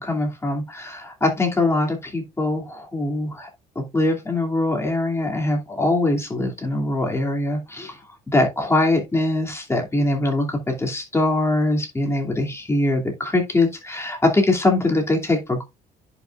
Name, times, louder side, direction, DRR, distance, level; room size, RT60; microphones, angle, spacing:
voice 1, 0.0-3.5 3.8-8.0 8.3-15.6, left 2 dB, 15° left, 2.6 m, -22 dB
10.5 x 5.9 x 2.5 m
cardioid pair, 110°, 17 cm